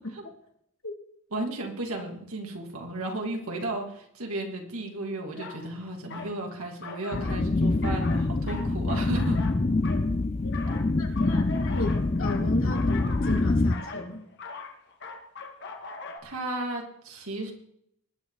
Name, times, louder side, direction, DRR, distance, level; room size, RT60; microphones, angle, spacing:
voice 1, 1.3-9.4 16.2-17.5, right 2 dB, 85° right, 1 dB, 2.7 m, -34 dB
sound 1, 5.3-5.6 6.1-6.4 6.8-7.5 7.8-10.1 10.5-16.2, left 4 dB, 55° left, 1.8 m, -40 dB
sound 2, 7.1-13.8, left 2 dB, 30° left, 0.5 m, -25 dB
voice 2, 11.0-14.3, left 2 dB, 75° left, 2 dB, 2.6 m, -34 dB
20.0 x 9.5 x 4.1 m, 0.73 s
head